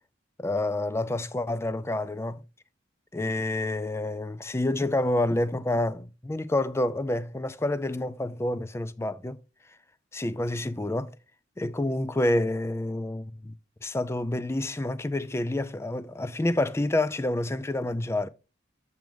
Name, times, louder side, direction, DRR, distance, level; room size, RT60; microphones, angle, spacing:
voice 1, 0.4-2.4 3.1-9.4 9.7-9.8 10.1-11.2 11.6-18.3, left 1 dB, 15° left, 0.4 m, -28 dB
7.6 x 6.1 x 3.5 m
head